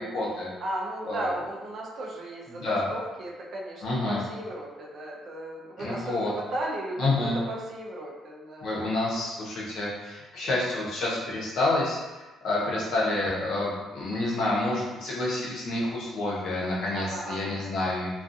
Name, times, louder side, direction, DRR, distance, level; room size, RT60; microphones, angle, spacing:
voice 1, 0.0-0.5 1.0-1.3 2.5-2.9 3.8-4.2 5.8-6.3 7.0-7.4 8.6-18.2, left 2 dB, 55° left, -5 dB, 0.7 m, -28 dB
voice 2, 0.6-8.8 12.6-12.7 16.9-17.7, right 1 dB, 45° right, -2 dB, 0.4 m, -35 dB
2.4 x 2.3 x 2.5 m, 1.2 s
cardioid pair, 175°, 0 cm